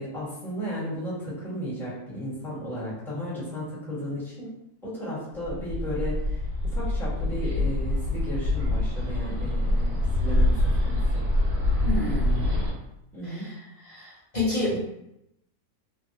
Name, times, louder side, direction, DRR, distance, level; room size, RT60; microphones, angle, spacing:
voice 1, 0.0-4.5 4.8-6.4 6.6-11.0 13.1-13.5, equal, ahead, -10 dB, 1.2 m, -34 dB
Bird, 5.4-12.7, left 1 dB, 80° right, 1.3 m, -25 dB
voice 2, 11.8-12.7 13.2-13.5 13.8-14.8, left 2 dB, 35° left, -8 dB, 0.8 m, -29 dB
3.2 x 2.3 x 2.8 m, 0.81 s
omnidirectional pair, 1.6 m